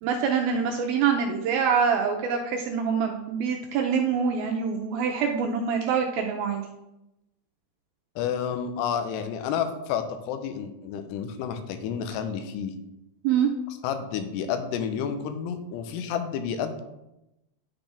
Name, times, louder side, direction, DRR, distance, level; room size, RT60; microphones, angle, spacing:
voice 1, 0.0-6.6 13.2-13.5, right 6 dB, 85° right, 2 dB, 2.1 m, -25 dB
voice 2, 8.2-12.7 13.8-16.8, left 7 dB, 85° left, 8 dB, 2.8 m, -30 dB
11.5 x 4.3 x 3.4 m, 0.91 s
omnidirectional pair, 4.8 m